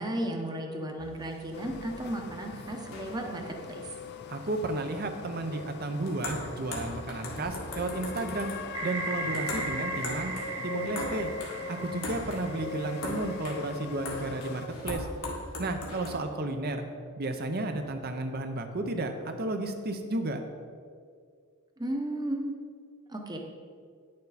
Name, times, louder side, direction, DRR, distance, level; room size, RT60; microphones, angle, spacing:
voice 1, 0.0-3.4 3.7-3.8 21.8-22.6 23.1-23.4, right 1 dB, 20° right, 2 dB, 0.9 m, -34 dB
sound 1, 1.0-16.2, left 1 dB, 80° left, 1.8 m, -41 dB
sound 2, 1.5-14.7, left 4 dB, 55° left, 0.4 m, -41 dB
voice 2, 4.3-8.5 8.8-10.3 10.6-11.3 11.7-15.1 15.6-16.8 17.2-20.4, right 2 dB, 50° right, 6 dB, 0.7 m, -33 dB
sound 3, 8.7-13.6, right 5 dB, 90° right, 0.8 m, -38 dB
9.6 x 6.6 x 4.1 m, 2.1 s
head